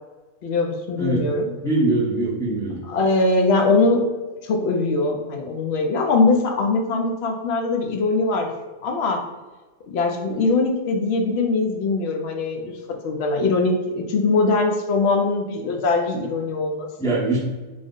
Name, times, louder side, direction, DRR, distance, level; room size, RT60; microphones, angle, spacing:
voice 1, 0.4-1.5 2.9-4.0 4.4-8.5 8.8-9.2 9.9-16.9, left 3 dB, 65° left, 2 dB, 0.7 m, -21 dB
voice 2, 1.6-2.8 14.2-14.3 17.0-17.4, right 2 dB, 5° left, -7 dB, 0.5 m, -22 dB
3.4 x 2.0 x 3.6 m, 1.2 s
omnidirectional pair, 1.4 m